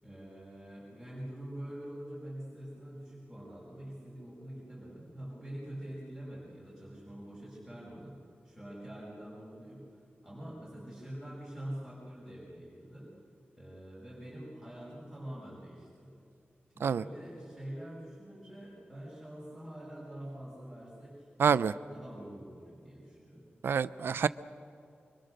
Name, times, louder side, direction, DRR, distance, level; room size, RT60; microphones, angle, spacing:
voice 1, 0.0-8.2 8.4-9.8 10.2-13.1 13.5-16.2 16.7-23.5, right 1 dB, 10° left, -7 dB, 5.7 m, -45 dB
voice 2, 21.4-21.7 23.6-24.3, right 7 dB, 75° right, 15 dB, 0.5 m, -27 dB
25.5 x 24.0 x 6.5 m, 2.4 s
wide cardioid pair, 145°, 4 cm